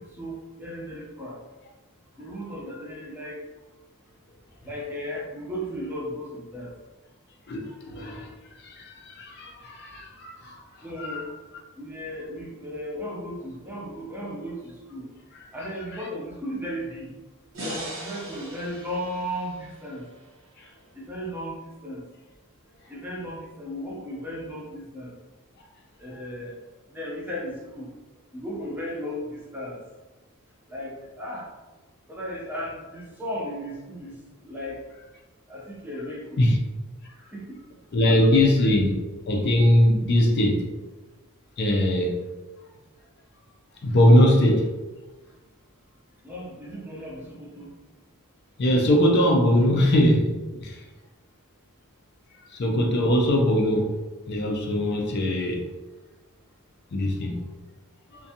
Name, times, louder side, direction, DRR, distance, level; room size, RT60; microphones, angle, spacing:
voice 1, 0.1-1.4 2.2-3.4 4.6-6.7 10.8-11.3 11.8-15.1 15.5-17.1 17.6-20.0 20.9-22.0 22.9-25.1 26.0-26.6 26.9-27.9 28.3-29.8 30.7-31.5 32.1-34.2 34.4-34.8 35.5-36.6 37.3-37.6 38.1-38.7 46.2-47.7, equal, 10° right, -4 dB, 0.5 m, -35 dB
voice 2, 7.5-8.3 8.6-10.6 11.0-11.2 36.4-36.6 37.9-39.0 39.3-40.7 41.6-42.2 43.8-44.7 48.6-50.8 52.5-54.0 54.3-55.6 56.9-57.4, left 1 dB, 50° left, 1 dB, 0.4 m, -21 dB
sound 1, 17.5-20.8, right 1 dB, 65° right, 1.0 m, -39 dB
2.5 x 2.2 x 2.7 m, 1.2 s
head